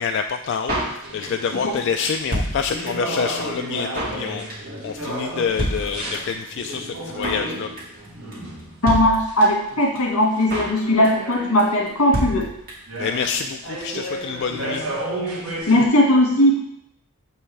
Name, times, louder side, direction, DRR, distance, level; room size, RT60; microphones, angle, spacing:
voice 1, 0.0-4.4 4.8-7.7 13.0-14.8, left 6 dB, 55° left, 5 dB, 0.3 m, -27 dB
Drum kit, 0.7-1.5 1.8-1.9 2.0-3.1 3.4-3.5 3.7-4.2 4.5-4.8 5.0-5.1 5.3-5.4 5.6-6.4 6.7-6.8 7.0-7.5 7.8-8.1 8.3-8.4 8.6-8.7 8.9-9.7 10.0-10.1 10.2-10.8 11.0-11.3 11.6-11.7 11.9-12.0 12.1-13.0 13.2-13.3 13.5-13.6, right 1 dB, 40° right, 2.1 m, -27 dB
sound 1, 1.0-9.5 10.4-12.2 12.6-15.9, right 1 dB, 70° right, 1.6 m, -33 dB
voice 2, 8.8-12.5 15.7-16.6, left 1 dB, 85° left, -1 dB, 1.9 m, -18 dB
7.4 x 5.4 x 3.4 m, 0.77 s
head